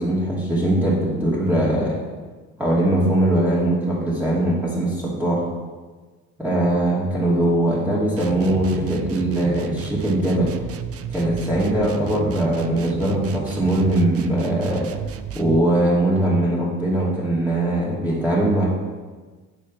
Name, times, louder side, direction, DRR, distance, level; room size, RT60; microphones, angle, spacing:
voice 1, 0.0-2.0 2.6-5.5 6.4-10.5 11.1-14.9 15.3-18.7, right 1 dB, 5° right, -7 dB, 2.8 m, -21 dB
sound 1, 8.2-15.7, right 8 dB, 50° right, 0.7 m, -33 dB
9.3 x 6.5 x 5.8 m, 1.4 s
cardioid pair, 90°, 30 cm